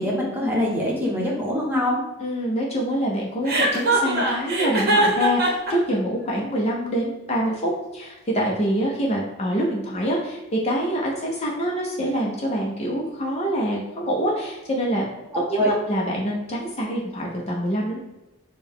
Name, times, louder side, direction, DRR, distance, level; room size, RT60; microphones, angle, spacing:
voice 1, 0.0-2.0 15.6-15.7, left 1 dB, 10° right, -4 dB, 0.9 m, -23 dB
voice 2, 2.2-15.0 15.5-18.0, equal, 30° left, -3 dB, 0.6 m, -25 dB
Chuckle chortle, 3.5-5.7, right 2 dB, 45° right, 0.9 m, -21 dB
6.6 x 2.2 x 3.5 m, 1.0 s
head